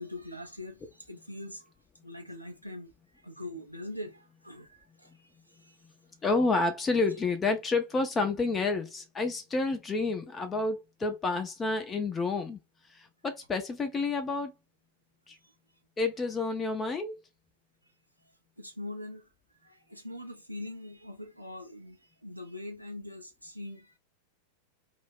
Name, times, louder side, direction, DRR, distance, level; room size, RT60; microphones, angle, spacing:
voice 1, 0.0-1.7 2.0-2.9 3.2-5.3 5.6-5.8 18.6-19.3 19.6-24.0, left 1 dB, 90° right, 0.4 m, -42 dB
voice 2, 6.2-12.6 12.9-14.5 15.3-15.4 16.0-17.2, left 3 dB, 20° left, 0.4 m, -29 dB
2.3 x 2.0 x 3.5 m
figure-of-eight pair, 90°, 0 cm